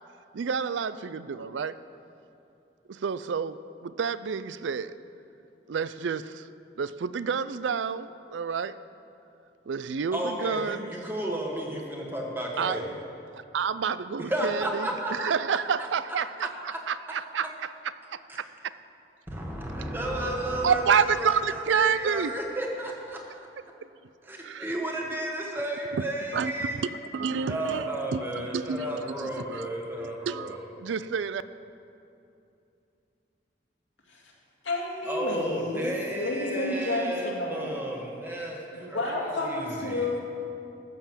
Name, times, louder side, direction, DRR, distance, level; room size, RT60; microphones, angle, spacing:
voice 1, 0.3-1.8 2.9-4.9 5.7-6.5 6.8-8.7 9.7-10.9 12.6-12.8 13.5-17.7 18.1-18.4 20.2-20.3 20.6-22.3 24.4-24.7 26.3-26.5 27.1-29.7 30.0-31.4, right 6 dB, 85° right, 15 dB, 0.4 m, -29 dB
voice 2, 10.1-12.9 14.2-15.9 18.3-18.4 19.3-23.2 24.2-26.8 27.5-30.7 35.1-39.2 39.5-40.1, right 1 dB, 10° right, -1 dB, 1.4 m, -33 dB
voice 3, 34.6-37.8 38.7-40.2, left 2 dB, 90° left, -3 dB, 2.6 m, -31 dB
13.5 x 6.8 x 7.4 m, 2.7 s
head